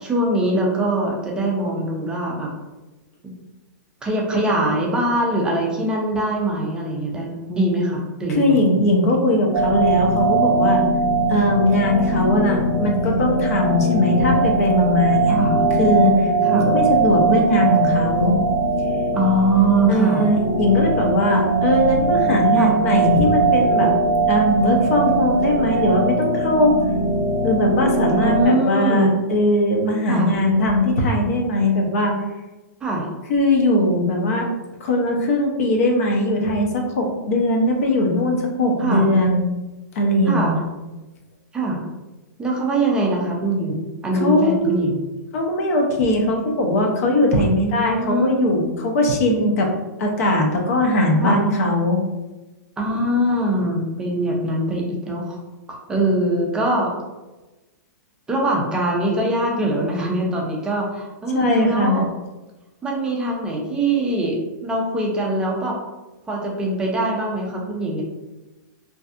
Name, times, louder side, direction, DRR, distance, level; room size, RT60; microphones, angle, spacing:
voice 1, 0.0-2.5 4.0-8.6 15.3-15.6 16.4-16.7 19.1-20.3 22.5-22.7 28.2-29.2 30.1-30.3 32.8-33.1 38.8-39.1 40.3-40.6 41.5-41.8 42.4-45.0 47.4-48.5 51.2-51.4 52.8-55.4 55.7-56.9 58.3-62.0 62.8-65.8 66.3-68.0, right 1 dB, 10° right, -2 dB, 0.4 m, -22 dB
voice 2, 8.3-10.9 11.3-15.4 15.8-18.4 19.9-23.9 24.3-26.7 27.4-32.1 33.3-34.5 34.8-39.5 39.9-40.6 44.2-44.9 45.3-49.7 50.0-52.0 61.3-62.0, left 1 dB, 55° left, 1 dB, 0.6 m, -20 dB
sound 1, 9.5-28.5, right 3 dB, 30° right, 0.8 m, -20 dB
2.6 x 2.3 x 2.4 m, 1.1 s
hypercardioid pair, 155°, 10 cm